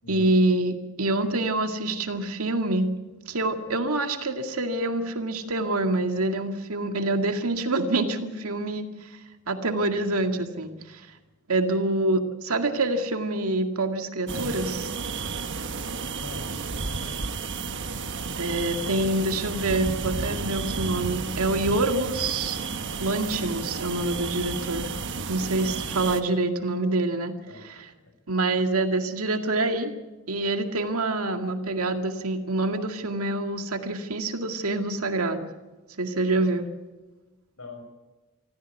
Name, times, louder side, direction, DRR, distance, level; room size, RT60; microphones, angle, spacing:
voice 1, 0.1-2.9 3.3-9.1 9.5-11.0 11.5-14.9 18.4-22.6 23.0-24.9 25.3-27.3 27.6-27.9 28.3-29.9 30.3-35.5 36.0-36.7, right 2 dB, 75° right, 6 dB, 2.1 m, -26 dB
sound 1, 14.3-26.2, right 4 dB, 55° right, 1.3 m, -32 dB
voice 2, 16.1-16.5 16.7-17.2 18.8-19.1 27.5-28.1 37.6-37.8, left 3 dB, 70° left, 5 dB, 6.2 m, -43 dB
25.5 x 14.5 x 8.3 m, 1.2 s
head